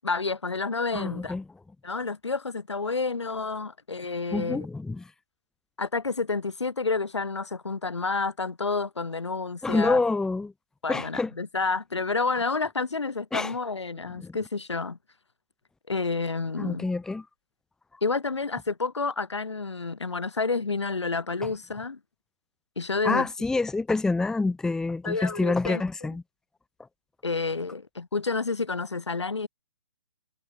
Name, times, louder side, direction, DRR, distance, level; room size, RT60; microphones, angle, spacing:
voice 1, 0.0-1.4 1.8-4.7 5.8-10.0 10.8-15.0 15.9-16.9 18.0-22.0 22.8-23.3 25.0-25.8 27.2-29.5, left 4 dB, 85° left, 7.7 m, -29 dB
voice 2, 0.9-1.4 4.3-5.0 9.6-10.5 10.9-11.3 13.3-13.5 14.2-14.3 16.6-17.2 23.0-26.2, left 3 dB, 5° left, 1.1 m, -27 dB
hypercardioid pair, 140°, 14 cm